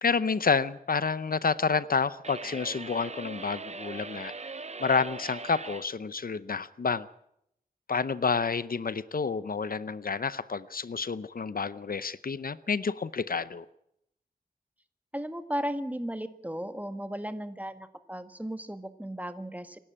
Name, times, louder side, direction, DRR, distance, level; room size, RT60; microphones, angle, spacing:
voice 1, 0.0-4.5 4.8-7.1 7.9-13.6, left 5 dB, 65° left, 16 dB, 0.7 m, -29 dB
sound 1, 2.2-5.9, right 4 dB, 45° right, 0.7 m, -40 dB
voice 2, 15.1-19.8, equal, 10° right, 9 dB, 1.6 m, -35 dB
26.0 x 12.0 x 8.7 m, 0.76 s
wide cardioid pair, 65°, 16 cm